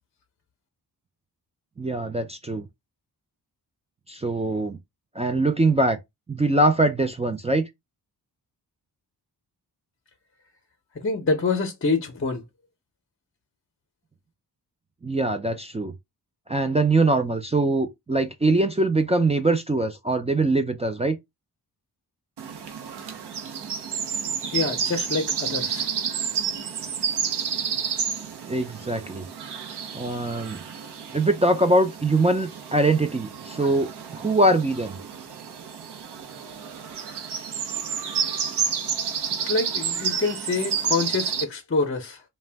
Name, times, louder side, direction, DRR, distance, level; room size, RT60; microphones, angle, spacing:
voice 1, 1.8-2.7 4.1-4.8 5.2-6.0 6.3-7.7 15.0-15.9 16.5-21.2 28.5-29.3 29.9-30.6 31.1-35.0, right 2 dB, 15° right, 0.3 m, -22 dB
voice 2, 11.0-12.4 24.5-25.9 39.4-42.2, left 4 dB, 30° left, 0.6 m, -26 dB
sound 1, 22.4-41.4, right 7 dB, 75° right, 0.7 m, -30 dB
2.5 x 2.2 x 3.3 m
cardioid pair, 70°, 41 cm